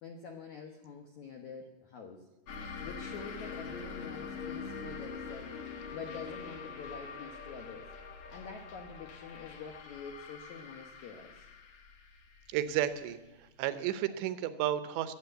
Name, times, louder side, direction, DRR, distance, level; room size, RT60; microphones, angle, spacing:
voice 1, 0.0-2.3 2.8-5.5 5.9-7.9 8.3-11.5, left 5 dB, 85° left, 3 dB, 1.6 m, -46 dB
sound 1, 2.5-13.7, left 5 dB, 60° left, 2.1 m, -44 dB
voice 2, 12.5-13.2 13.6-15.1, right 11 dB, 80° right, 12 dB, 3.0 m, -32 dB
21.0 x 8.4 x 8.0 m, 1.1 s
omnidirectional pair, 5.2 m